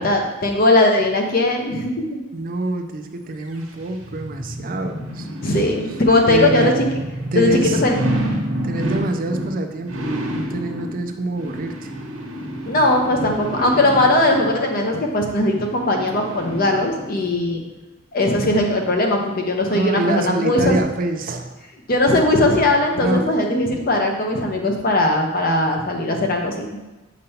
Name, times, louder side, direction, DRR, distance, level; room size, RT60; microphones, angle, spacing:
voice 1, 0.0-2.2 5.4-6.8 7.4-8.0 12.7-17.6 18.1-20.8 21.9-26.7, left 2 dB, 45° left, 2 dB, 0.8 m, -19 dB
voice 2, 2.3-5.3 6.3-6.8 7.3-7.8 8.6-11.9 19.7-21.6 22.9-23.3, right 2 dB, 40° right, 5 dB, 0.4 m, -26 dB
sound 1, 3.4-17.3 17.8-17.9, right 1 dB, 80° right, 1.1 m, -29 dB
6.6 x 5.2 x 2.8 m, 1.1 s
head